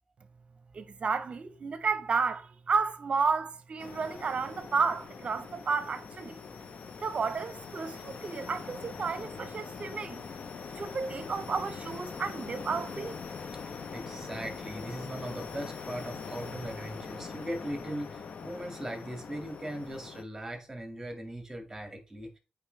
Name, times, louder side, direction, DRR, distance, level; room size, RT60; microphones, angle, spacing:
voice 1, 0.7-6.4 7.0-10.2 10.8-13.2, right 5 dB, 40° right, 0.8 m, -32 dB
sound 1, 3.8-20.2, left 5 dB, 50° left, 0.8 m, -42 dB
voice 2, 13.9-22.4, right 1 dB, 15° right, 2.1 m, -39 dB
8.2 x 4.8 x 3.3 m
wide cardioid pair, 130°, 3 cm